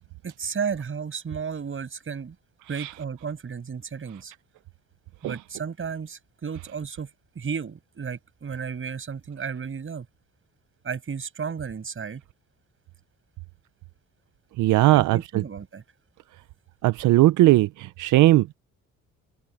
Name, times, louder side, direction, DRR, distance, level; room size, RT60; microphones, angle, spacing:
voice 1, 0.2-2.4 2.7-4.3 5.2-7.1 7.3-10.1 10.8-12.2 14.9-15.8, right 6 dB, 45° right, 6.3 m, -33 dB
voice 2, 14.6-15.2 16.8-18.5, right 17 dB, 80° right, 0.6 m, -18 dB
open air
cardioid pair, 90°, 30 cm